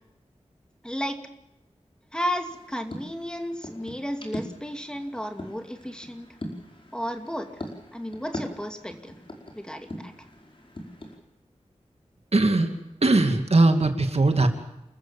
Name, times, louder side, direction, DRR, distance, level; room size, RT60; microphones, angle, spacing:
voice 1, 0.8-1.3 2.1-6.3 6.9-7.6 7.9-9.2 9.5-10.1, equal, 5° left, 5 dB, 2.5 m, -33 dB
sound 1, 2.4-11.2, left 1 dB, 45° left, 5.0 m, -41 dB
voice 2, 12.3-12.7 13.0-14.5, right 2 dB, 60° right, 6 dB, 2.5 m, -20 dB
29.0 x 14.5 x 7.3 m, 0.91 s
wide cardioid pair, 75°, 12 cm